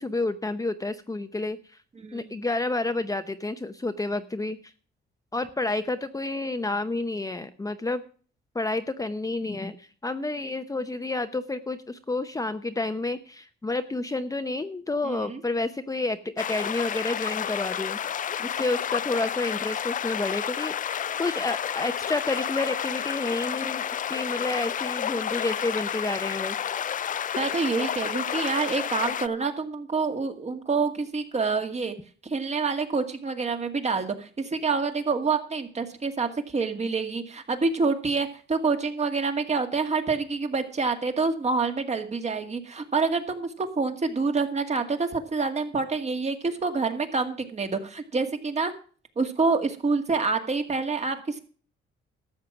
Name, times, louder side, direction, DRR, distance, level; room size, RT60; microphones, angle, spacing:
voice 1, 0.0-1.8 2.1-4.7 5.3-8.0 8.5-18.0 18.4-26.7, left 2 dB, 15° left, 9 dB, 0.8 m, -30 dB
voice 2, 2.0-2.3 15.0-15.4 27.4-32.0 32.2-48.7 49.2-51.4, right 4 dB, 35° right, 6 dB, 2.0 m, -27 dB
sound 1, 16.4-29.3, left 9 dB, 40° left, 0.5 m, -30 dB
13.0 x 7.3 x 6.1 m, 0.42 s
cardioid pair, 90°, 20 cm